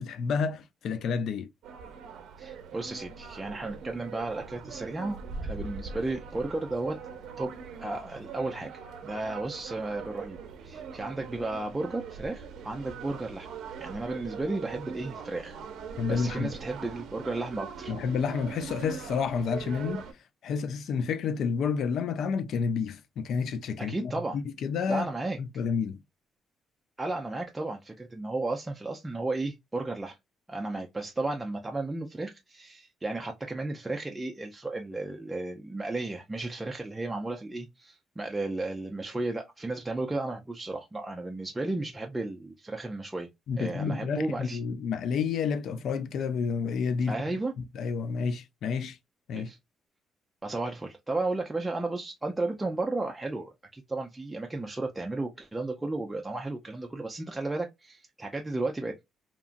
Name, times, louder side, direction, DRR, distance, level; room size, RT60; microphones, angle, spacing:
voice 1, 0.0-1.5 16.0-16.5 17.9-20.1 20.4-25.1 25.4-26.0 43.5-47.2 47.6-49.0 49.3-49.5, left 6 dB, 65° left, 0.3 m, -30 dB
sound 1, 1.6-20.1, right 5 dB, 80° right, 0.5 m, -42 dB
voice 2, 2.4-7.0 7.4-7.5 7.8-8.7 9.0-10.4 10.6-13.5 13.8-15.6 16.1-17.9 23.8-24.4 24.9-25.4 27.0-30.2 30.5-43.3 43.6-44.6 47.1-47.5 49.3-49.6 50.4-58.9, right 2 dB, 15° right, 0.4 m, -34 dB
2.9 x 2.4 x 2.4 m
cardioid pair, 120°, 0 cm